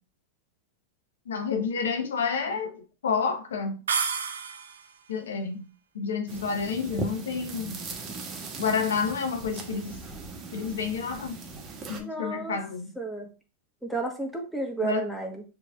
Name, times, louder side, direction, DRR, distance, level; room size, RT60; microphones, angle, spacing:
voice 1, 1.3-3.8 5.1-5.7 5.9-7.8 8.6-10.0 10.5-11.4 11.9-12.9 14.8-15.1, left 5 dB, 80° left, 5 dB, 0.9 m, -29 dB
sound 1, 3.9-5.0, right 6 dB, 85° right, 0.6 m, -30 dB
sound 2, 6.3-12.0, right 3 dB, 30° right, 1.1 m, -39 dB
voice 2, 12.0-12.6 13.0-13.3 13.8-15.4, right 2 dB, ahead, 1 dB, 1.2 m, -32 dB
6.4 x 3.0 x 2.4 m, 0.34 s
hypercardioid pair, 105°, 0 cm